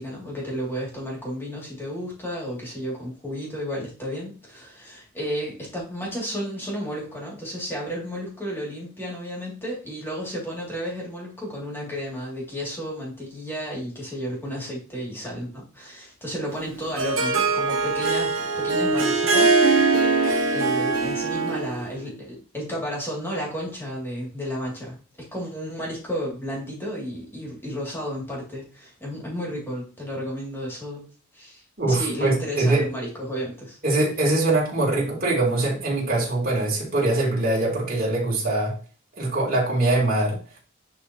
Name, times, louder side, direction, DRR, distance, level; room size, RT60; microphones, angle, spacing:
voice 1, 0.0-20.2 20.5-31.1 31.3-31.6 31.9-33.8, equal, 10° left, -4 dB, 2.8 m, -32 dB
Harp, 16.6-21.9, right 3 dB, 70° right, 1.3 m, -22 dB
voice 2, 31.8-32.8 33.8-38.7 39.2-40.4, right 2 dB, 45° right, -4 dB, 3.4 m, -22 dB
10.5 x 4.3 x 3.1 m, 0.38 s
head